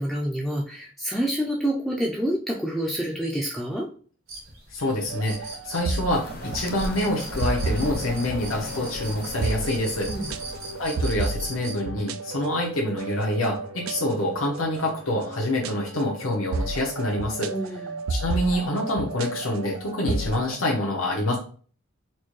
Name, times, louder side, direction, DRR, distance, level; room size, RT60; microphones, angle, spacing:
voice 1, 0.0-3.9 10.1-10.3 17.5-18.0, right 1 dB, ahead, -3 dB, 0.4 m, -28 dB
sound 1, 4.3-11.7, right 1 dB, 70° right, 1.2 m, -38 dB
voice 2, 4.7-10.1 10.8-17.8 18.1-21.4, left 1 dB, 85° left, -2 dB, 0.8 m, -26 dB
Peaceful Hip Hop, 5.1-20.7, right 3 dB, 90° right, 0.3 m, -33 dB
sound 2, 6.1-11.1, left 2 dB, 50° left, 0.6 m, -41 dB
4.3 x 2.1 x 3.1 m, 0.42 s
head